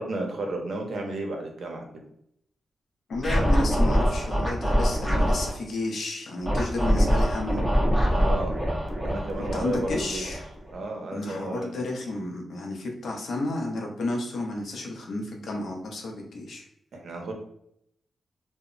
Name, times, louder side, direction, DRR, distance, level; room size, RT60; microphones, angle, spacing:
voice 1, 0.0-1.9 8.1-8.6 9.0-10.3 10.7-11.8 16.9-17.3, right 2 dB, 60° right, 1 dB, 0.6 m, -32 dB
voice 2, 3.1-7.6 9.4-10.4 11.1-16.7, left 2 dB, 65° left, 1 dB, 0.6 m, -32 dB
Scratching (performance technique), 3.2-5.5 6.4-10.8, equal, ahead, 0.6 m, -24 dB
2.0 x 2.0 x 3.6 m, 0.74 s
wide cardioid pair, 150°, 0 cm